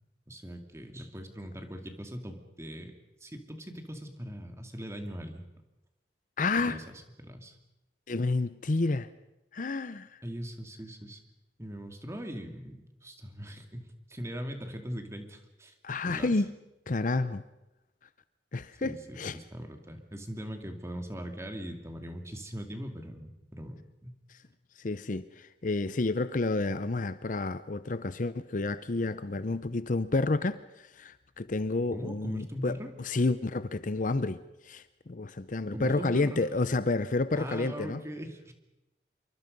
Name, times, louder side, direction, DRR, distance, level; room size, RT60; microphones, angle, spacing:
voice 1, 0.3-2.9 3.2-5.4 6.6-6.8 7.2-7.6 10.2-11.2 11.6-15.7 16.1-16.3 18.8-24.2 31.9-32.9 35.7-36.4 37.4-38.5, equal, 15° right, 2.3 m, -40 dB
voice 2, 6.4-6.8 8.1-9.1 9.5-10.2 15.8-16.5 16.9-17.4 18.5-19.4 24.8-38.0, left 3 dB, 45° left, 0.7 m, -30 dB
26.5 x 23.5 x 5.3 m
head